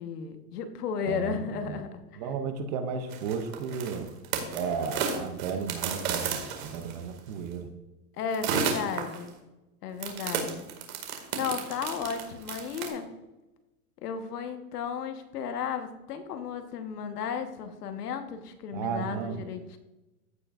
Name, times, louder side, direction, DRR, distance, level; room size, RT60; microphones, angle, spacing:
voice 1, 0.0-2.2 8.2-9.3 9.8-10.7 11.3-13.1 14.0-19.8, left 6 dB, 85° left, 7 dB, 1.3 m, -34 dB
voice 2, 1.1-1.8 2.2-4.1 4.5-7.7 18.7-19.4, right 6 dB, 30° right, 8 dB, 0.5 m, -34 dB
sound 1, 3.1-7.2 8.3-9.3 10.0-12.9, right 6 dB, 65° right, 2.1 m, -32 dB
15.0 x 5.6 x 2.4 m, 1.0 s
supercardioid pair, 160°, 45 cm